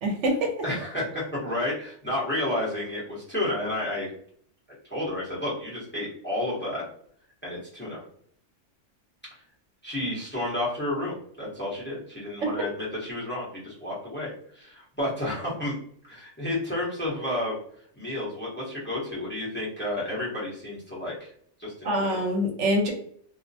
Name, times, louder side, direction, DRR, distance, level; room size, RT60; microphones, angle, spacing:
voice 1, 0.0-0.5 21.8-22.9, equal, 75° right, 2 dB, 0.9 m, -25 dB
voice 2, 0.6-4.1 4.9-6.8 7.4-8.0 9.8-15.8 16.1-17.6 17.9-21.3 21.6-22.3, left 1 dB, 10° left, -7 dB, 0.8 m, -31 dB
2.4 x 2.1 x 2.6 m, 0.62 s
omnidirectional pair, 1.2 m